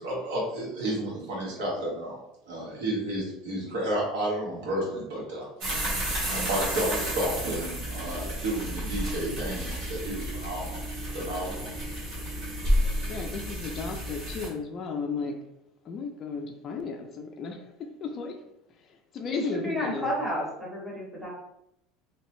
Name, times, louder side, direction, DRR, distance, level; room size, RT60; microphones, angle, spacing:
voice 1, 0.0-2.2 2.5-5.5 6.3-10.8 11.1-11.7, right 1 dB, 80° right, -4 dB, 1.3 m, -31 dB
voice 2, 1.6-1.9 13.1-15.4 15.8-18.4 18.8-20.1, left 4 dB, 35° left, 3 dB, 0.4 m, -35 dB
sound 1, 5.6-14.5, equal, 50° right, 1.2 m, -31 dB
voice 3, 19.3-21.3, equal, 5° right, -4 dB, 0.9 m, -31 dB
2.7 x 2.1 x 3.0 m, 0.79 s
supercardioid pair, 140°, 0 cm